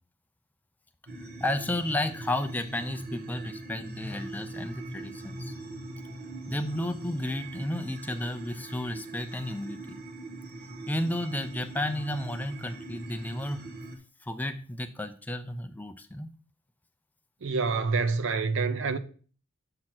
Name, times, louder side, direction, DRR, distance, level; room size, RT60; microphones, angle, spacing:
sound 1, 1.1-14.0, right 2 dB, 45° right, 1.0 m, -41 dB
voice 1, 1.2-5.5 6.5-10.0 10.9-13.7 14.2-16.3, left 1 dB, 10° left, 0.4 m, -32 dB
voice 2, 17.4-19.0, right 4 dB, 60° right, 0.6 m, -27 dB
7.5 x 2.9 x 5.9 m
head